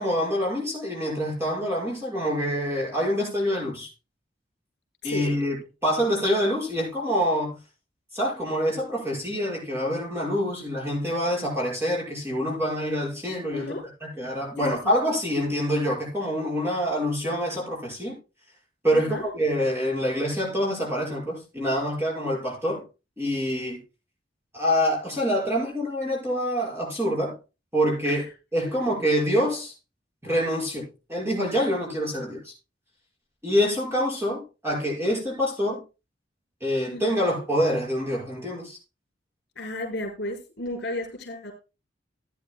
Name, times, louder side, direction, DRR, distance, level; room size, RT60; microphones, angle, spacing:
voice 1, 0.0-3.9 5.0-5.6 5.8-7.6 8.1-13.7 14.0-18.1 18.8-22.8 23.2-23.8 24.5-27.4 27.7-28.3 28.5-29.7 30.2-32.5 33.4-35.8 36.6-38.8, equal, 15° right, 6.2 m, -26 dB
voice 2, 5.0-5.4 13.5-13.8 14.6-14.9 18.9-19.2 28.0-28.2 36.9-37.2 39.6-41.5, left 1 dB, 65° left, 4.2 m, -33 dB
16.0 x 9.8 x 2.3 m
head